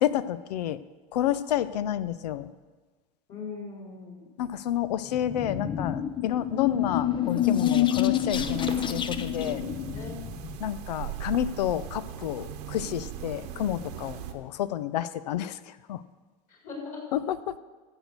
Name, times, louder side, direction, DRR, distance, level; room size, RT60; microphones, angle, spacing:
voice 1, 0.0-0.8 1.1-2.5 4.4-9.6 10.6-16.0 17.1-17.6, left 11 dB, 80° left, 16 dB, 0.6 m, -29 dB
voice 2, 3.3-4.3 9.3-10.2 16.5-17.0, left 4 dB, 40° left, -1 dB, 4.5 m, -40 dB
sound 1, 5.1-10.6, left 10 dB, 25° left, 0.6 m, -28 dB
sound 2, 8.3-14.3, right 10 dB, 75° right, 1.2 m, -39 dB
14.0 x 6.4 x 6.6 m, 1.3 s
hypercardioid pair, 100°, 20 cm